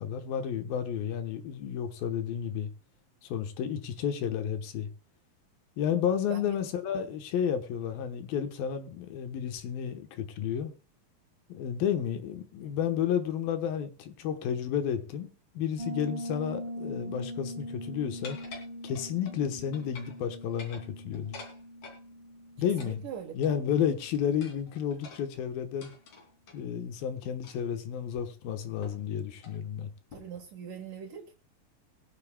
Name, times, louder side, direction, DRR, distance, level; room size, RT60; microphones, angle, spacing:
voice 1, 0.0-2.7 3.2-4.9 5.8-10.7 11.5-15.3 15.5-18.4 18.8-21.4 22.6-23.0 23.3-25.9 26.5-29.9, left 8 dB, 80° left, 2.9 m, -31 dB
Piano, 15.8-24.3, equal, 50° right, 1.8 m, -42 dB
sound 1, 18.2-19.4 19.7-20.2 20.5-22.0 22.8-23.8 24.4-26.6 27.4-27.7 28.1-28.2 28.8-29.1 29.4-29.6 30.1-30.4, left 4 dB, 50° left, 3.8 m, -48 dB
voice 2, 22.8-23.5 30.1-31.3, right 8 dB, 65° right, 2.7 m, -42 dB
21.5 x 10.5 x 2.2 m
omnidirectional pair, 4.2 m